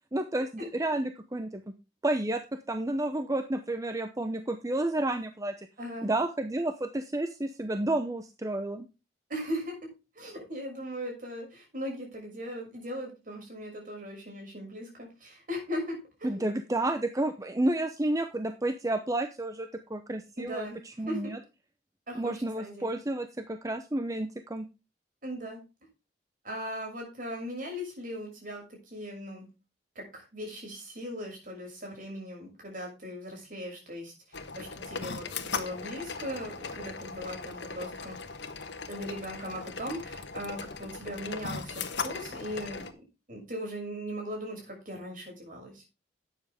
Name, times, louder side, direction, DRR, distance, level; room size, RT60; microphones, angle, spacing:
voice 1, 0.1-1.7 2.0-2.4 2.7-5.7 6.0-8.9 16.2-21.4 22.2-24.6, right 1 dB, 20° right, 8 dB, 0.7 m, -31 dB
voice 2, 5.8-6.1 9.3-16.5 20.4-20.8 21.1-21.3 22.1-22.9 25.2-25.6 26.4-29.5 29.9-34.1 34.5-38.2 38.9-42.9 43.3-45.8, equal, 50° right, 0 dB, 6.6 m, -39 dB
sound 1, 34.3-42.9, left 4 dB, 80° left, 1.3 m, -38 dB
12.5 x 9.1 x 3.6 m, 0.29 s
head